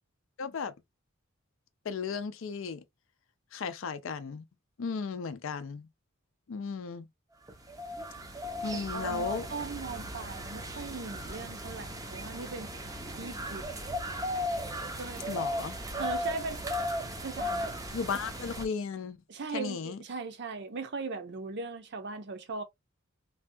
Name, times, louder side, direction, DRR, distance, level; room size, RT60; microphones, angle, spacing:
voice 1, 0.4-0.7 1.9-2.8 3.5-4.4 4.8-5.9 6.5-7.1 8.6-9.5 15.3-15.8 17.9-19.2 19.5-20.0, left 5 dB, 65° left, 0.4 m, -35 dB
sound 1, 7.5-18.7, equal, 15° right, 0.5 m, -36 dB
voice 2, 8.7-13.7 15.0-15.4 16.0-16.6 17.2-17.7 19.3-22.6, right 4 dB, 55° right, 0.6 m, -39 dB
3.4 x 2.2 x 2.6 m
head